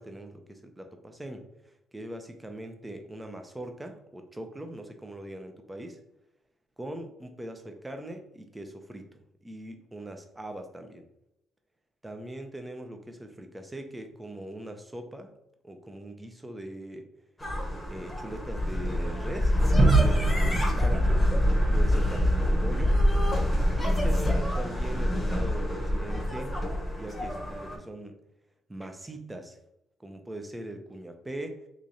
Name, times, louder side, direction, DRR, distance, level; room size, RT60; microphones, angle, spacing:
voice 1, 0.0-1.4 1.9-6.0 6.8-9.1 9.4-11.1 12.0-15.3 15.6-17.1 17.9-21.2 21.6-23.0 23.8-26.6 26.9-28.1 28.7-29.6 30.0-31.6, right 1 dB, 15° right, 5 dB, 0.6 m, -41 dB
sound 1, 17.4-27.8, left 1 dB, 15° left, 1.0 m, -26 dB
Gunshot gunfire / Fireworks / Boom, 19.8-24.6, right 4 dB, 40° right, 0.9 m, -29 dB
3.1 x 2.5 x 4.0 m, 0.85 s
cardioid pair, 80°, 0 cm